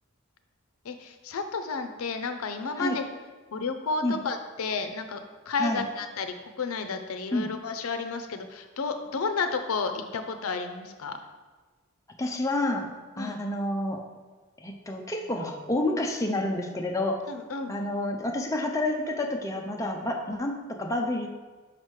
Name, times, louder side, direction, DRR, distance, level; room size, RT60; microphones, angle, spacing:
voice 1, 0.8-3.0 3.5-11.2 13.2-13.4 17.3-17.8, left 4 dB, 85° left, 8 dB, 0.5 m, -32 dB
voice 2, 12.2-12.9 13.2-14.0 14.6-17.3 17.7-21.3, left 1 dB, 15° left, 1 dB, 0.4 m, -29 dB
5.8 x 5.2 x 3.2 m, 1.4 s
head